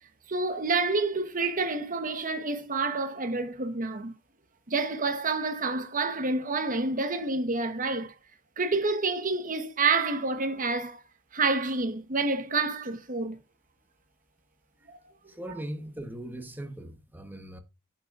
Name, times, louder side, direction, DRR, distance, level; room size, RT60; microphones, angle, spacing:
voice 1, 0.3-4.1 4.7-8.1 8.6-11.0 11.3-13.4 14.9-15.0, right 3 dB, 40° right, 1.2 m, -28 dB
voice 2, 15.3-17.6, right 1 dB, 10° right, 1.2 m, -39 dB
9.6 x 6.4 x 2.5 m
head